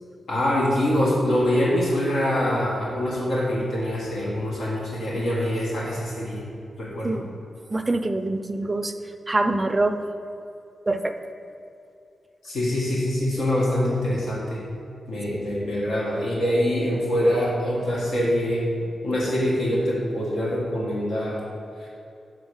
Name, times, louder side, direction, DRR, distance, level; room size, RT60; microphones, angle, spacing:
voice 1, 0.3-6.4 6.8-7.2 12.4-14.6 15.1-18.7 19.0-21.4 21.8-21.9, equal, 85° left, -5 dB, 1.5 m, -24 dB
voice 2, 7.7-8.9 9.3-10.0 10.9-11.1 15.3-15.4, right 2 dB, 20° right, 7 dB, 0.4 m, -24 dB
6.3 x 3.9 x 6.2 m, 2.6 s
wide cardioid pair, 120°, 0 cm